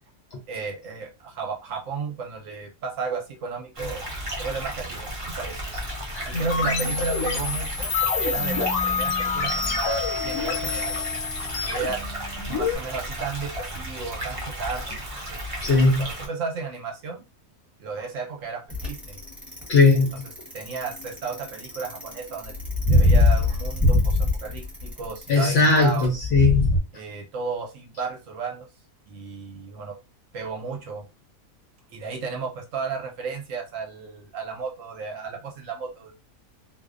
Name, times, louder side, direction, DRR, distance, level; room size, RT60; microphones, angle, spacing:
voice 1, 0.5-4.0 4.4-5.5 6.3-11.0 11.6-12.0 12.5-14.8 15.3-15.4 15.7-17.2 17.8-19.2 20.5-22.5 22.9-26.1 26.9-28.7 29.1-30.0 30.3-31.1 31.9-36.1, right 5 dB, 70° right, 0.9 m, -33 dB
sound 1, 3.7-16.3, equal, 50° right, 0.4 m, -34 dB
sound 2, 6.3-12.7, left 4 dB, 85° left, 1.1 m, -27 dB
voice 2, 15.6-16.1 19.7-20.2 25.3-26.7, left 3 dB, 65° left, 0.7 m, -19 dB
Bicycle, 18.7-26.8, left 2 dB, ahead, 0.6 m, -22 dB
2.5 x 2.0 x 2.4 m
omnidirectional pair, 1.5 m